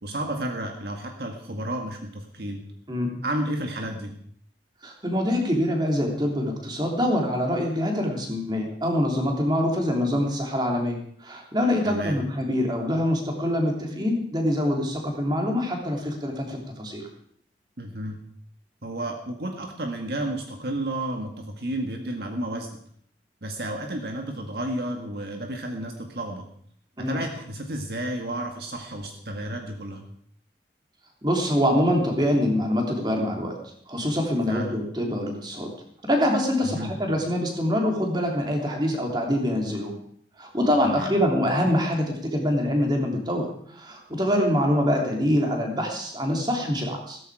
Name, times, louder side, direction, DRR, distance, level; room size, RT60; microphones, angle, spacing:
voice 1, 0.0-2.7 3.2-4.2 11.8-12.2 17.8-18.2 18.8-22.7 23.4-26.5 27.0-30.0 34.5-34.9 36.6-36.9 40.8-41.1, right 1 dB, 60° right, 3 dB, 1.8 m, -32 dB
voice 2, 4.8-17.0 27.0-27.2 31.2-33.5 33.9-35.7 36.1-39.9 40.4-47.2, equal, 25° right, 1 dB, 3.2 m, -25 dB
16.5 x 14.5 x 4.9 m, 0.63 s
head